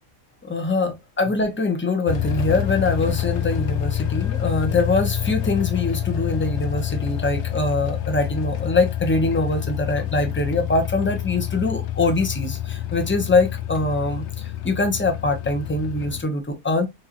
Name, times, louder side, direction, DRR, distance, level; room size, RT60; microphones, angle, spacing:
voice 1, 0.4-16.9, left 2 dB, 20° left, 0.3 m, -23 dB
sound 1, 2.1-16.2, left 11 dB, 65° left, 0.8 m, -27 dB
3.8 x 3.0 x 2.9 m
omnidirectional pair, 1.4 m